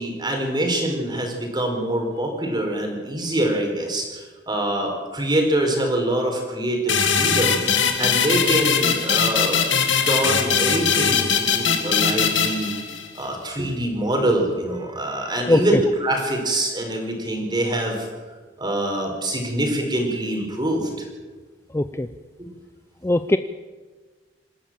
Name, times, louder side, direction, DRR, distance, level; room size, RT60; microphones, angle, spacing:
voice 1, 0.0-7.6 8.0-9.6 10.0-12.7 13.2-18.1 18.6-21.1 22.4-22.5, right 1 dB, 25° right, 2 dB, 4.7 m, -24 dB
sound 1, 6.9-13.2, left 6 dB, 85° left, 2.4 m, -21 dB
voice 2, 15.5-15.8 21.7-22.1 23.0-23.4, left 1 dB, 15° left, 10 dB, 0.5 m, -19 dB
27.0 x 13.0 x 7.6 m, 1.4 s
head